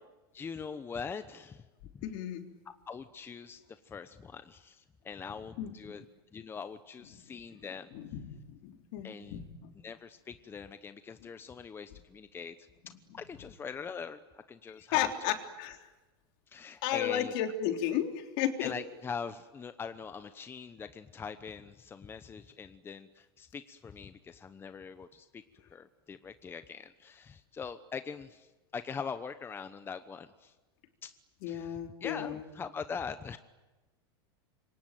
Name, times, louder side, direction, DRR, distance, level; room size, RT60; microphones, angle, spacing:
voice 1, 0.3-1.7 1.9-2.0 2.9-6.1 6.3-7.9 9.0-9.4 9.8-15.1 16.5-17.3 18.6-25.4 25.7-30.5 31.0-31.1 31.4-33.4, left 6 dB, 20° left, 11 dB, 1.0 m, -42 dB
voice 2, 2.0-2.4 5.6-6.0 7.9-9.7 14.9-15.9 16.8-18.7 31.4-32.4, left 10 dB, 60° left, 5 dB, 3.4 m, -33 dB
27.0 x 24.0 x 9.1 m, 1.1 s
supercardioid pair, 125°, 13 cm